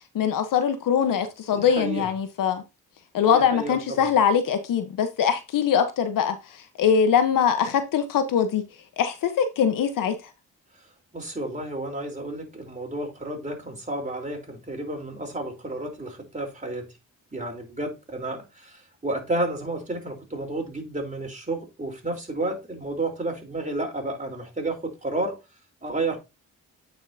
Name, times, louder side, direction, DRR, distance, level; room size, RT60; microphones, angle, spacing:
voice 1, 0.1-2.6 3.1-6.4 6.8-8.6 9.0-10.1, left 7 dB, 75° left, 1.2 m, -22 dB
voice 2, 1.5-2.1 3.3-4.1 11.1-16.9 17.3-25.4 25.8-26.2, right 2 dB, 20° right, 3.9 m, -31 dB
9.1 x 5.6 x 2.8 m
supercardioid pair, 55°, 33 cm